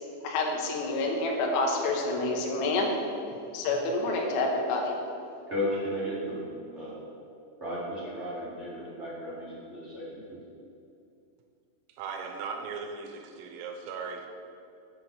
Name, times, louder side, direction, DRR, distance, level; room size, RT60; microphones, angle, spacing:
voice 1, 0.2-2.9 3.5-4.9, left 2 dB, 90° left, 0 dB, 3.6 m, -28 dB
voice 2, 5.5-7.0 7.6-10.4, equal, 25° right, -10 dB, 1.5 m, -34 dB
voice 3, 12.0-14.3, right 5 dB, 85° right, 3 dB, 3.6 m, -38 dB
8.0 x 6.7 x 6.9 m, 2.6 s
omnidirectional pair, 5.8 m